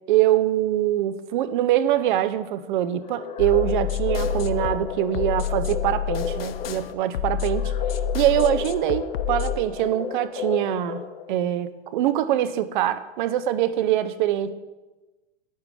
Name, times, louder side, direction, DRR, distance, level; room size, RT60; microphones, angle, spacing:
voice 1, 0.1-7.7 8.1-14.5, right 12 dB, 45° right, 12 dB, 0.8 m, -23 dB
sound 1, 3.0-11.5, left 7 dB, 20° left, 0.6 m, -33 dB
sound 2, 3.4-9.6, left 9 dB, 60° left, 0.7 m, -28 dB
10.5 x 9.4 x 5.0 m, 1.1 s
figure-of-eight pair, 105°, 34 cm